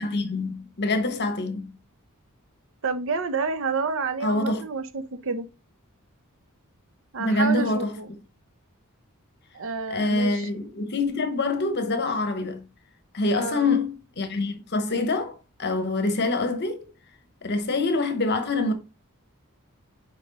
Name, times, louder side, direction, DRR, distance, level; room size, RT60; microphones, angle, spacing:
voice 1, 0.0-1.7 4.2-4.6 7.2-8.2 9.9-12.6 13.1-16.8 17.4-18.7, left 2 dB, 50° left, 1.0 m, -25 dB
voice 2, 2.8-5.5 7.1-8.1 9.5-10.5 13.3-13.7, right 4 dB, 65° right, 0.8 m, -29 dB
6.0 x 4.6 x 4.0 m
head